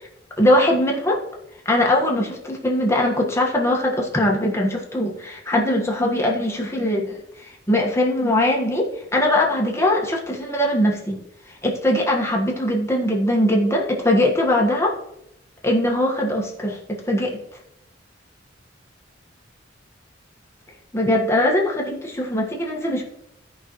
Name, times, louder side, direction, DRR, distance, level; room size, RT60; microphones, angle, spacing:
voice 1, 0.4-1.2 1.6-11.2 11.6-14.9 15.6-17.4 20.9-23.0, left 1 dB, 15° left, -1 dB, 1.4 m, -21 dB
16.0 x 5.4 x 3.1 m, 0.79 s
head